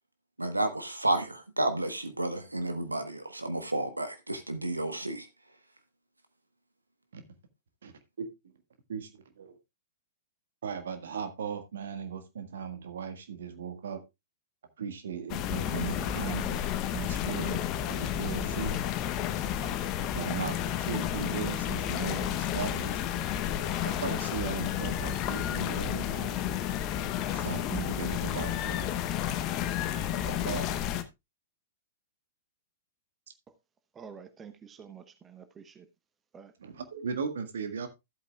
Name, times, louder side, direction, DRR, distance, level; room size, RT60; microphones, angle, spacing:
voice 1, 0.4-5.3, right 1 dB, 85° right, 1.2 m, -31 dB
voice 2, 8.9-9.5 10.6-14.0 14.8-16.6 16.9-17.6 17.9-18.8 20.1-23.0 23.6-26.3 27.3-28.9 30.1-30.7 36.6-37.9, right 7 dB, 60° right, 1.7 m, -37 dB
sound 1, 15.3-31.0, left 10 dB, 35° left, 1.0 m, -31 dB
voice 3, 34.0-35.8 36.3-36.5, right 6 dB, 20° right, 1.0 m, -48 dB
14.5 x 8.2 x 2.3 m
figure-of-eight pair, 105°, 0 cm